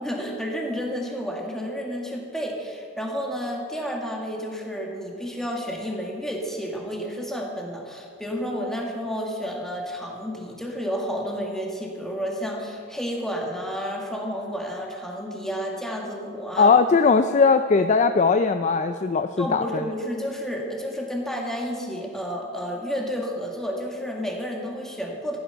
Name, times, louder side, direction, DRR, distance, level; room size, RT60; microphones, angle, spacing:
voice 1, 0.0-16.7 19.4-25.4, equal, ahead, -1 dB, 1.9 m, -31 dB
voice 2, 16.6-19.9, left 4 dB, 35° left, 9 dB, 0.4 m, -19 dB
15.0 x 11.5 x 5.7 m, 2.3 s
head